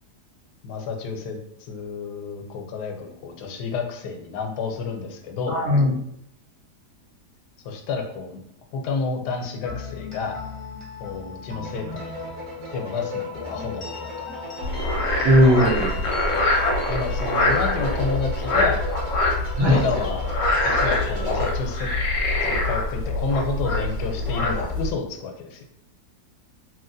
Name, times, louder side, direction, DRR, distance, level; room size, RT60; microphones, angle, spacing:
voice 1, 0.6-5.6 7.6-8.4 8.7-10.4 11.0-12.3 12.7-14.3 16.9-18.8 19.6-20.3 20.6-21.9 22.4-25.6, left 4 dB, 85° left, 3 dB, 1.2 m, -30 dB
voice 2, 5.5-6.0 15.2-15.9 19.6-19.8, equal, 70° right, -1 dB, 1.0 m, -18 dB
sound 1, 9.6-19.4, left 2 dB, 25° left, 0.7 m, -39 dB
sound 2, 11.6-21.5, left 2 dB, 85° right, 1.3 m, -37 dB
Frog, 14.6-24.9, left 2 dB, 65° left, 0.9 m, -24 dB
3.0 x 2.7 x 2.5 m, 0.75 s
omnidirectional pair, 1.7 m